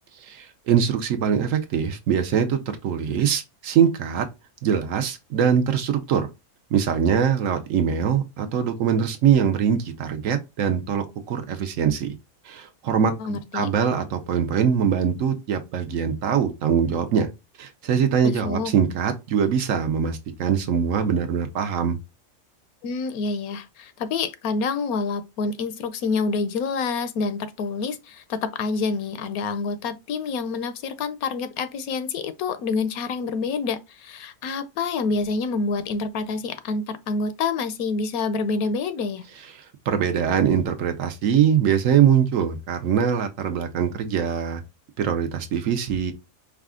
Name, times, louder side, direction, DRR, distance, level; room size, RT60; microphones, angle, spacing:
voice 1, 0.2-4.3 4.6-6.3 6.7-12.1 12.4-17.3 17.6-22.0 39.9-44.6 45.0-46.1, right 8 dB, 65° right, 1.0 m, -22 dB
voice 2, 13.2-13.7 18.2-18.7 22.8-39.2, left 4 dB, 75° left, 1.1 m, -27 dB
4.9 x 2.4 x 3.6 m
omnidirectional pair, 1.6 m